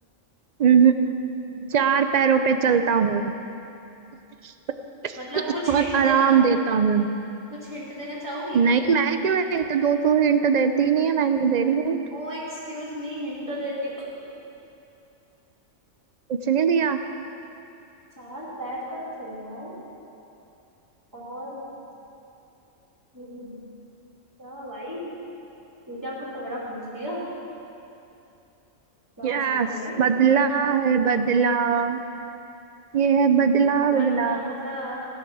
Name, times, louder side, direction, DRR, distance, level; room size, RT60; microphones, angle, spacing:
voice 1, 0.6-0.9 1.7-3.2 5.0-7.1 8.5-12.0 16.3-17.0 29.2-29.7 30.0-32.0 32.9-34.5, right 6 dB, 60° right, 9 dB, 0.4 m, -20 dB
voice 2, 5.2-6.3 7.5-8.7 12.1-14.1 18.2-19.8 21.1-21.8 23.1-23.7 24.4-25.1 25.9-27.2 29.2-30.0 33.9-35.0, equal, 15° right, -8 dB, 2.8 m, -34 dB
16.5 x 7.4 x 6.1 m, 2.8 s
omnidirectional pair, 1.3 m